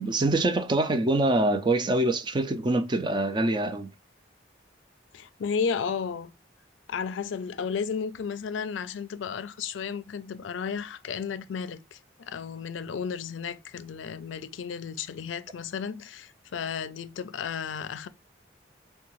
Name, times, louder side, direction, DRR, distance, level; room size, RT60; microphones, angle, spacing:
voice 1, 0.0-3.9, right 2 dB, 25° right, 0.4 m, -25 dB
voice 2, 5.1-6.3 6.9-18.1, left 6 dB, 85° left, 0.4 m, -33 dB
4.5 x 2.2 x 3.0 m
head